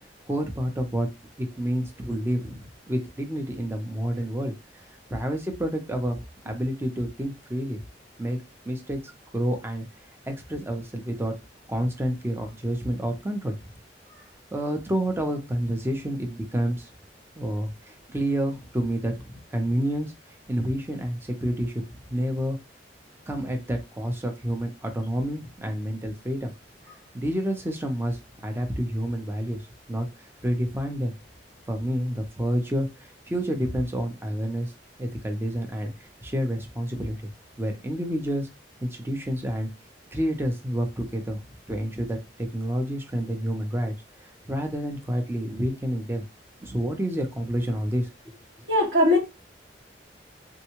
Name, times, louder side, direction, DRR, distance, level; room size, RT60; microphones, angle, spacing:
voice 1, 0.3-1.1 1.4-4.5 5.1-7.8 8.2-8.4 8.7-9.9 10.3-11.3 11.7-13.6 14.5-16.9 17.3-20.1 20.5-22.6 23.3-26.5 27.1-30.1 30.4-31.1 31.7-34.7 35.0-37.3 37.6-38.5 38.8-39.7 40.1-41.4 41.7-43.9 44.2-46.2 46.6-48.3, equal, 15° right, 0.6 m, -29 dB
voice 2, 48.7-49.2, left 1 dB, 70° right, 1.6 m, -19 dB
3.6 x 2.2 x 2.9 m
head